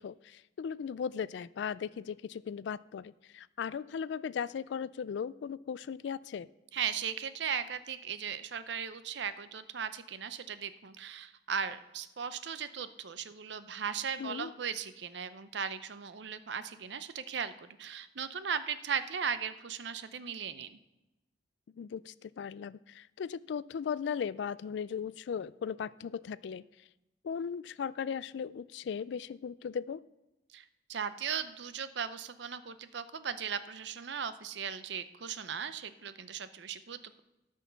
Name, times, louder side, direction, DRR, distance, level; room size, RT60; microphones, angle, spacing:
voice 1, 0.0-6.5 14.2-14.5 21.8-26.6 27.2-30.0, left 7 dB, 65° left, 19 dB, 0.3 m, -37 dB
voice 2, 6.7-20.8 30.5-37.2, right 7 dB, 65° right, 12 dB, 0.6 m, -37 dB
13.0 x 6.3 x 5.6 m, 0.99 s
head